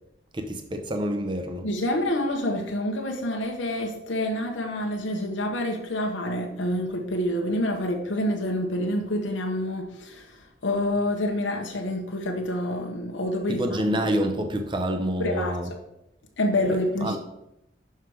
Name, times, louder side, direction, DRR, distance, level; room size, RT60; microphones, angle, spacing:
voice 1, 0.3-1.7 13.5-15.7 16.6-17.2, equal, 25° right, 5 dB, 0.8 m, -28 dB
voice 2, 1.6-10.4 10.6-14.0 15.2-15.8 16.4-17.2, left 1 dB, 75° left, 2 dB, 1.0 m, -27 dB
6.3 x 5.7 x 4.8 m, 0.85 s
head